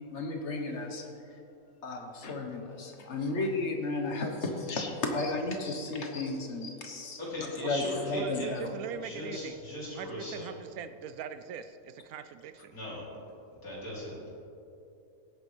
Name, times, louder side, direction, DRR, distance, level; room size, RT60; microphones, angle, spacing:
voice 1, 0.1-1.0 1.8-8.7, left 2 dB, 55° left, 3 dB, 1.4 m, -33 dB
voice 2, 7.2-8.6 9.0-10.5 12.7-13.0 13.6-14.3, left 1 dB, 85° left, -7 dB, 3.6 m, -38 dB
voice 3, 8.1-9.6 9.9-12.8, right 8 dB, 85° right, 11 dB, 1.1 m, -41 dB
16.5 x 9.3 x 3.3 m, 2.7 s
omnidirectional pair, 1.5 m